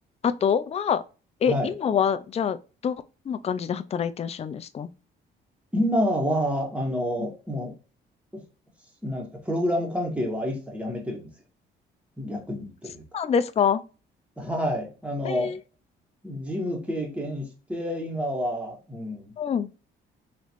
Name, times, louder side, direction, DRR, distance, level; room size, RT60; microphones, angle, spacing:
voice 1, 0.2-1.0 1.4-2.6 2.8-4.9 7.2-7.3 13.1-13.8 15.2-15.6 19.4-19.7, left 7 dB, 30° left, 0.4 m, -25 dB
voice 2, 5.7-7.7 8.3-8.4 9.0-11.3 12.2-13.0 14.4-15.6 16.2-19.3, equal, 5° right, 1.7 m, -28 dB
4.0 x 3.1 x 2.9 m
cardioid pair, 90°, 20 cm